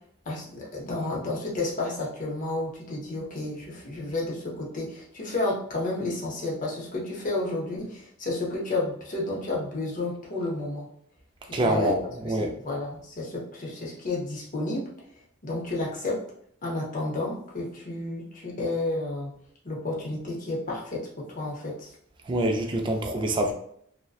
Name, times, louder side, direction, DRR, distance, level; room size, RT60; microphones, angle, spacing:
voice 1, 0.3-10.9 11.4-12.0 12.2-14.8 15.4-16.2 16.6-19.3 19.6-21.0 21.3-21.9, left 2 dB, 40° left, -3 dB, 0.7 m, -31 dB
voice 2, 11.5-12.0 12.2-12.5 22.3-23.5, right 1 dB, 25° right, 3 dB, 0.3 m, -25 dB
2.5 x 2.1 x 2.3 m, 0.67 s
head